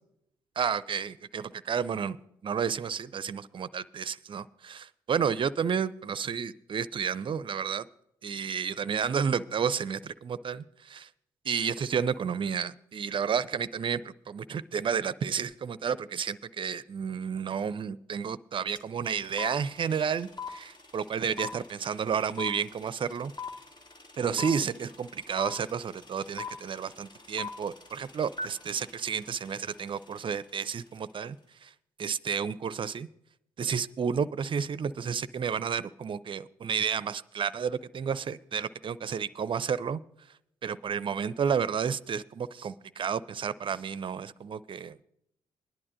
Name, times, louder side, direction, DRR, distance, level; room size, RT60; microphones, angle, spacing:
voice 1, 0.6-2.2 2.4-7.9 8.2-11.1 11.4-23.3 24.2-31.4 31.6-31.7 32.0-33.1 33.6-40.0 40.6-45.0, right 7 dB, 40° right, 17 dB, 0.5 m, -31 dB
sound 1, 18.8-18.9 19.0-30.2, left 5 dB, 35° left, 1.5 m, -40 dB
20.5 x 11.0 x 2.6 m, 0.79 s
hypercardioid pair, 45°, 13 cm